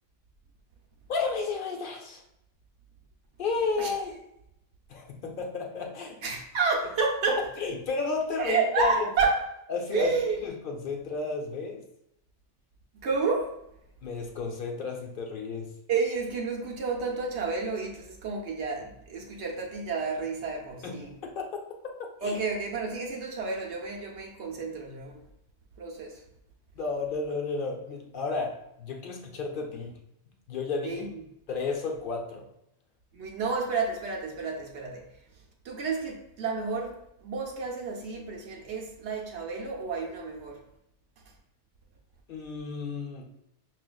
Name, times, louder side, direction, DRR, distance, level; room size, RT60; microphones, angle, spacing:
voice 1, 1.1-2.2 3.4-4.2 4.9-6.2 7.3-9.1 9.7-10.1 10.4-11.8 14.0-15.7 20.8-21.5 22.2-22.4 26.7-29.9 30.5-31.1 31.5-32.5 42.3-43.3, left 4 dB, 55° left, 0.7 m, -32 dB
voice 2, 6.2-7.4 8.4-9.4 9.9-10.5 13.0-13.5 15.9-21.1 22.2-25.2 25.8-26.2 30.8-31.1 33.1-35.0 35.6-37.0 37.2-40.6, right 4 dB, 80° right, 1.0 m, -30 dB
6.0 x 2.4 x 2.2 m
omnidirectional pair, 1.2 m